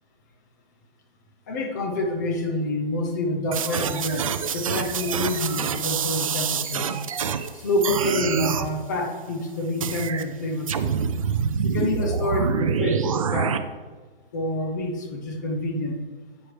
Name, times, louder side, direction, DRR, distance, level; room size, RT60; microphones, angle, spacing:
voice 1, 1.5-6.9 7.5-10.9 11.6-13.6 14.3-16.1, left 1 dB, 20° left, 4 dB, 0.5 m, -27 dB
sound 1, 3.5-7.5 7.8-8.7 9.8-10.2 10.7-13.6, right 6 dB, 35° right, 0.4 m, -26 dB
10.5 x 8.0 x 3.3 m, 1.4 s
hypercardioid pair, 170°, 30 cm